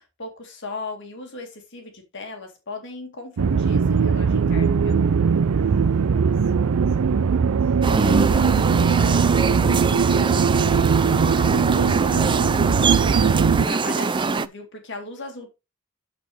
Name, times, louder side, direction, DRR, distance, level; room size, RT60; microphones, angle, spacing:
voice 1, 0.0-5.0 13.7-15.5, left 3 dB, 60° left, 2.1 m, -37 dB
sound 1, 3.4-13.7, right 6 dB, 85° right, 0.5 m, -20 dB
voice 2, 5.5-12.4, equal, 10° left, 4.4 m, -42 dB
sound 2, 7.8-14.5, right 4 dB, 20° right, 0.4 m, -23 dB
13.0 x 4.4 x 3.3 m
head